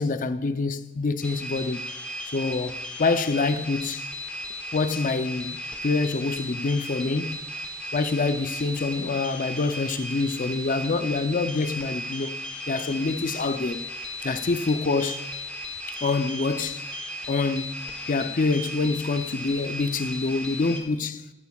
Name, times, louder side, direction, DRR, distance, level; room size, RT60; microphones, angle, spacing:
voice 1, 0.0-1.8 2.3-4.1 4.7-7.5 7.9-12.4 12.7-13.8 14.2-15.2 15.9-16.8 17.3-17.7 18.1-21.3, left 3 dB, 40° left, 0.5 m, -26 dB
sound 1, 1.2-20.8, equal, 5° left, 1.5 m, -36 dB
14.0 x 14.0 x 2.3 m
head